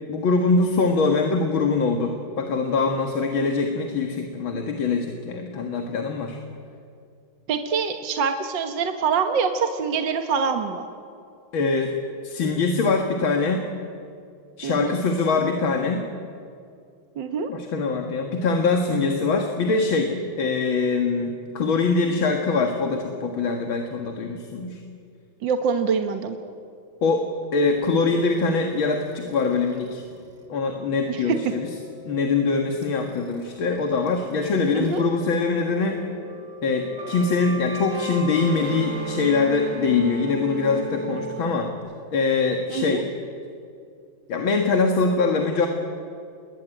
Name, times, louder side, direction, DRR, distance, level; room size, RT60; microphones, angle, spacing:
voice 1, 0.1-6.4 11.5-11.9 12.2-13.7 14.6-16.1 17.5-20.1 20.4-24.8 27.0-30.0 30.5-31.7 32.0-36.0 36.6-41.7 42.1-43.1 44.3-45.7, left 4 dB, 90° left, 3 dB, 2.6 m, -23 dB
voice 2, 7.5-10.8 14.6-15.0 17.2-17.5 25.4-26.4 31.1-31.2 34.8-35.0 42.7-43.0, right 6 dB, 70° right, 6 dB, 2.0 m, -25 dB
sound 1, 27.8-35.0 35.3-41.7, right 2 dB, 90° right, 3.9 m, -37 dB
29.0 x 21.5 x 9.1 m, 2.4 s
omnidirectional pair, 2.1 m